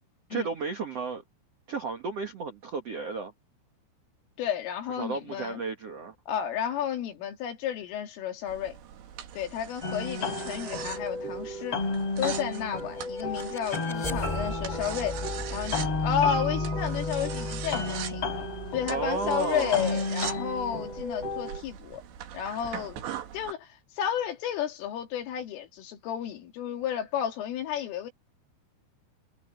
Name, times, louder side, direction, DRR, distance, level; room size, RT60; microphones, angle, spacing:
voice 1, 0.3-1.2 1.7-3.3 5.0-6.1 18.9-20.0, right 4 dB, 85° right, 1.3 m, -33 dB
voice 2, 4.4-5.6 6.3-8.8 9.3-11.8 12.2-15.2 15.5-18.3 18.7-22.0 22.3-23.0 23.3-28.1, left 9 dB, 75° left, 5.3 m, -32 dB
sound 1, 8.5-23.5, right 10 dB, 65° right, 4.0 m, -42 dB
sound 2, 9.8-21.6, left 2 dB, 30° left, 4.4 m, -32 dB
sound 3, 12.6-21.5, left 2 dB, 15° left, 2.1 m, -39 dB
omnidirectional pair, 5.9 m